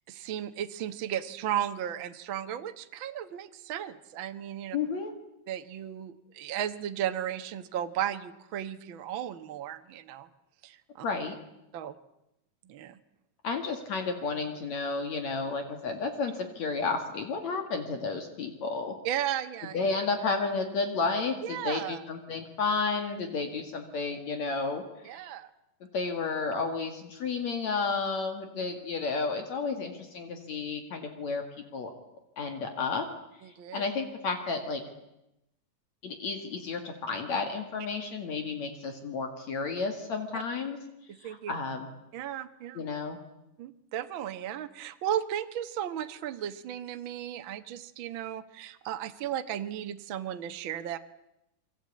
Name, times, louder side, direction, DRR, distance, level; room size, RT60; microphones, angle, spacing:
voice 1, 0.1-4.8 5.5-10.3 10.6-11.0 11.7-11.9 12.6-13.0 19.0-19.8 21.4-22.0 25.0-25.5 33.4-33.8 40.3-40.4 41.1-41.5 42.1-42.8 43.6-51.0, right 10 dB, 60° right, 8 dB, 1.4 m, -35 dB
voice 2, 4.7-5.1 11.0-11.3 13.4-19.0 19.7-24.8 25.1-25.3 25.9-31.4 31.7-31.9 32.4-33.0 33.4-34.8 36.0-40.8 41.2-41.9 42.7-43.2, left 4 dB, 60° left, 6 dB, 3.3 m, -32 dB
28.5 x 23.0 x 8.6 m, 0.88 s
omnidirectional pair, 3.8 m